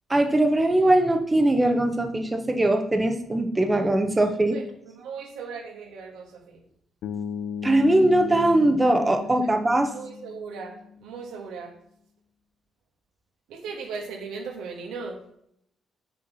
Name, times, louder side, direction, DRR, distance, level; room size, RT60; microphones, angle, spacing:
voice 1, 0.1-4.6 7.6-9.9, right 1 dB, 20° right, 6 dB, 0.9 m, -21 dB
voice 2, 4.5-6.6 9.9-11.8 13.5-15.2, right 5 dB, 90° right, 2 dB, 1.5 m, -37 dB
Bass guitar, 7.0-11.1, left 7 dB, 80° left, 0.6 m, -36 dB
7.5 x 4.5 x 5.6 m, 0.73 s
cardioid pair, 90°, 0 cm